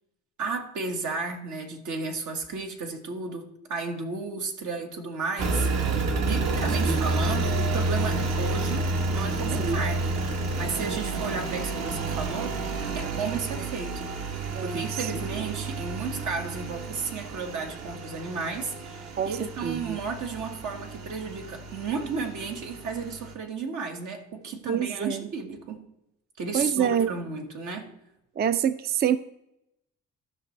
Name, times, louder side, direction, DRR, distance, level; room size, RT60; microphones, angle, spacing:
voice 1, 0.4-5.7 6.2-10.3 10.6-14.2 14.6-25.9 26.4-27.9, right 4 dB, 75° right, 1.6 m, -33 dB
Engine, 5.4-23.3, right 3 dB, 60° right, 1.2 m, -30 dB
voice 2, 14.5-15.1 19.2-19.3 19.6-20.0 24.7-25.2 26.5-27.1 28.4-29.2, right 8 dB, 35° right, 0.4 m, -26 dB
14.0 x 6.0 x 3.2 m
cardioid pair, 90°, 30 cm